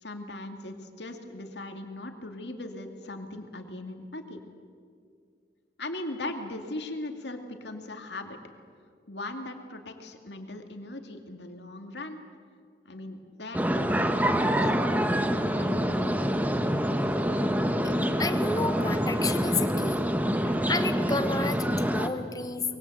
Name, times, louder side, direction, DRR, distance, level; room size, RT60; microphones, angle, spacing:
voice 1, 0.0-4.4 5.8-8.4 9.1-12.2 12.8-15.2 15.5-15.8, left 2 dB, 80° left, 5 dB, 2.4 m, -39 dB
sound 1, 13.5-22.1, equal, 10° right, 1.1 m, -26 dB
voice 2, 18.2-20.0 20.4-22.6, left 3 dB, 20° left, 9 dB, 1.2 m, -31 dB
24.5 x 22.5 x 8.0 m, 2.2 s
head